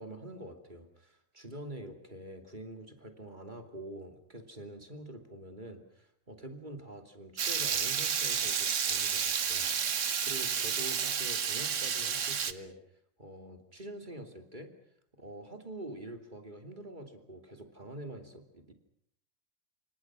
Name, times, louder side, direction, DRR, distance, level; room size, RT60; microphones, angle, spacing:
voice 1, 0.0-12.8 13.2-14.7 15.2-18.7, right 1 dB, 35° right, 6 dB, 2.9 m, -46 dB
Water tap faucet / Liquid, 7.4-12.5, right 7 dB, 70° right, 1.5 m, -31 dB
28.0 x 25.5 x 6.2 m, 0.68 s
omnidirectional pair, 1.4 m